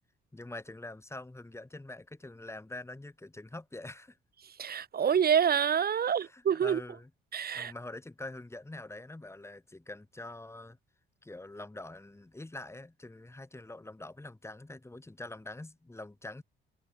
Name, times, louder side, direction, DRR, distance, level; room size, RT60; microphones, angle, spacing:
voice 1, 0.3-4.2 6.0-7.1 7.5-10.8 11.2-16.4, left 2 dB, 15° left, 4.6 m, -45 dB
voice 2, 4.4-6.8 7.3-7.7, right 8 dB, 50° right, 1.9 m, -27 dB
cardioid pair, 90°, 20 cm